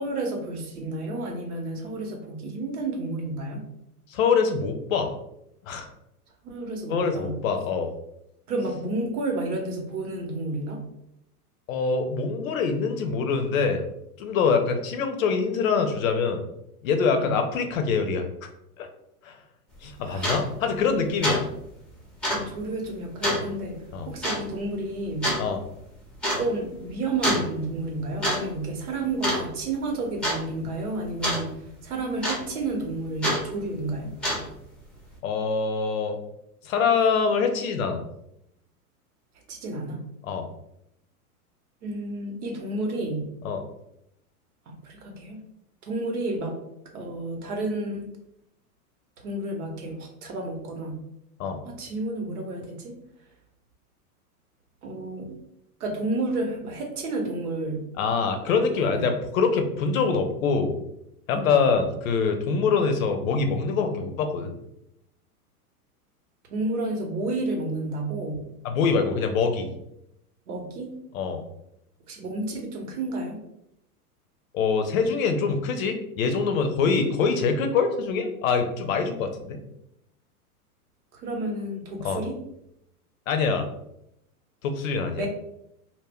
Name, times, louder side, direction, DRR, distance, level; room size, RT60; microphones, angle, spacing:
voice 1, 0.0-3.7 6.4-7.4 8.5-10.8 17.1-17.4 20.0-20.4 22.3-23.7 24.1-25.3 26.4-34.1 39.5-40.0 41.8-43.3 44.7-45.4 45.8-46.6 46.9-48.1 49.2-51.0 51.6-52.9 54.8-55.4 55.8-57.8 58.8-59.1 61.3-61.6 66.5-68.4 70.5-70.9 72.1-73.4 81.1-82.4 85.2-85.3, right 2 dB, 70° right, 2 dB, 0.9 m, -31 dB
voice 2, 4.1-5.1 5.7-5.9 6.9-7.9 11.7-13.8 14.2-16.4 16.8-18.2 18.8-18.9 19.2-19.3 19.8-21.5 23.9-24.1 25.4-25.6 35.2-36.2 36.6-38.1 40.2-40.5 43.4-43.6 51.4-51.6 58.0-60.8 61.3-64.5 68.6-69.7 71.1-71.5 74.5-79.6 82.0-82.2 83.3-83.7 84.6-85.3, left 5 dB, 60° left, 6 dB, 0.6 m, -24 dB
sound 1, 19.7-19.8 20.2-20.4 20.8-21.0 21.2-21.4 21.7-21.8 22.2-22.5 23.2-23.5 24.2-24.4 25.2-25.4 26.2-26.4 27.2-27.5 28.0-28.4 28.7-28.9 29.2-29.7 30.2-30.4 31.2-31.4 32.2-32.6 33.2-33.4 34.1-34.6, equal, ahead, 0.6 m, -25 dB
2.2 x 2.1 x 3.5 m, 0.79 s
hypercardioid pair, 110°, 46 cm